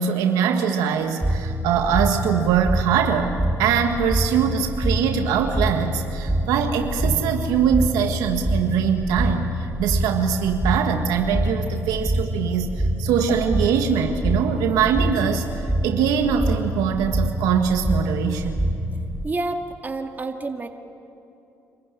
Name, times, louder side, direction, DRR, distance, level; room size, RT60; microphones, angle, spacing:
voice 1, 0.0-3.3 3.6-15.5 15.8-18.6, right 7 dB, 85° right, 5 dB, 1.6 m, -22 dB
sound 1, 1.2-19.3, right 1 dB, 5° right, 2.4 m, -26 dB
voice 2, 19.2-20.7, right 2 dB, 30° right, 4 dB, 2.1 m, -28 dB
26.5 x 15.0 x 9.9 m, 2.8 s
supercardioid pair, 65°, 6 cm